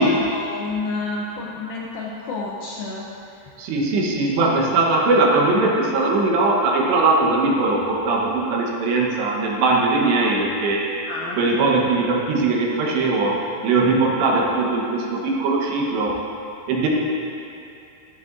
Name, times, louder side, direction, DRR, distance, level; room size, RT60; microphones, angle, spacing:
voice 1, 0.0-3.1 11.1-11.9, left 3 dB, 75° left, -3 dB, 2.2 m, -29 dB
voice 2, 3.6-10.9 11.4-16.2 16.7-16.9, right 3 dB, 80° right, -2 dB, 3.3 m, -20 dB
12.5 x 12.0 x 2.6 m, 2.7 s
omnidirectional pair, 5.0 m